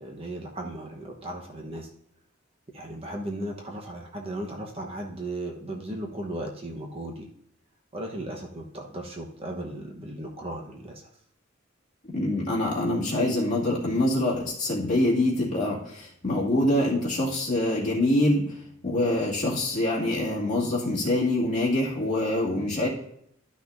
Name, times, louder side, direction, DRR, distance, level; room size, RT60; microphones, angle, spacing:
voice 1, 0.0-1.9 2.7-7.3 7.9-11.1, right 1 dB, 30° right, 0 dB, 1.0 m, -36 dB
voice 2, 12.1-18.6 18.8-22.9, left 1 dB, 40° left, -6 dB, 2.3 m, -25 dB
12.5 x 6.0 x 2.6 m, 0.69 s
head